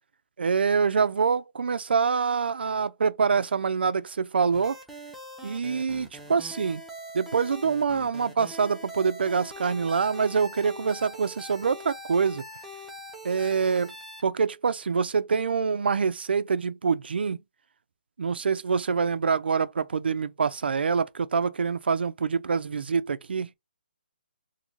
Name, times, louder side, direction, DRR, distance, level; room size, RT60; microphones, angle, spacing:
voice 1, 0.4-4.8 5.4-6.8 7.1-12.4 13.2-13.9 14.2-17.4 18.2-23.5, right 5 dB, 70° right, 0.5 m, -25 dB
sound 1, 4.5-14.3, left 1 dB, ahead, 0.3 m, -43 dB
3.7 x 2.1 x 3.1 m
hypercardioid pair, 175°, 6 cm